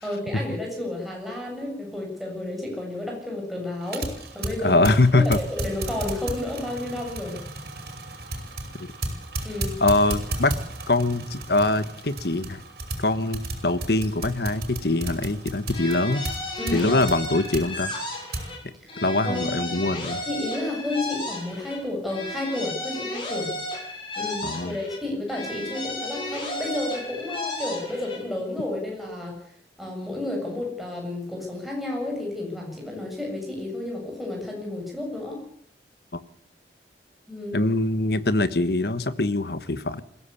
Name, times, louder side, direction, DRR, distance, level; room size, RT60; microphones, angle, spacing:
voice 1, 0.0-4.9 5.1-7.4 9.4-9.7 16.6-16.9 19.2-19.8 20.3-23.5 24.2-29.4 29.8-35.4 37.3-37.6, left 1 dB, ahead, -1 dB, 7.8 m, -31 dB
sound 1, 3.8-18.5, right 2 dB, 60° right, 5.8 m, -34 dB
voice 2, 4.6-5.4 8.8-8.9 9.8-10.5 10.9-12.6 13.0-16.3 16.7-17.9 19.0-20.2 24.4-24.8 36.1-36.2 37.5-40.0, left 2 dB, 65° left, 13 dB, 1.4 m, -23 dB
sound 2, 15.7-18.6 18.9-21.8 22.1-25.0 25.3-28.2, left 1 dB, 30° left, 7.8 m, -33 dB
22.0 x 16.0 x 8.5 m, 0.69 s
head